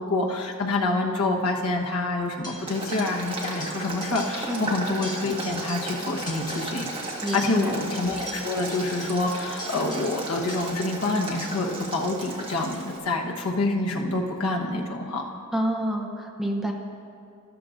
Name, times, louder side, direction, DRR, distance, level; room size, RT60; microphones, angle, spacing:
voice 1, 0.0-6.9 7.3-15.2, left 2 dB, 80° left, 0 dB, 1.1 m, -27 dB
sound 1, 2.4-3.2 3.4-4.7 4.9-6.0 6.3-6.9 7.3-10.9 11.4-11.8, equal, 20° left, 1.3 m, -42 dB
Boiling, 2.7-13.0, right 2 dB, 25° right, 1.6 m, -35 dB
voice 2, 7.2-7.7 15.5-16.7, right 1 dB, ahead, 1 dB, 0.7 m, -28 dB
13.5 x 13.0 x 2.6 m, 2.4 s
head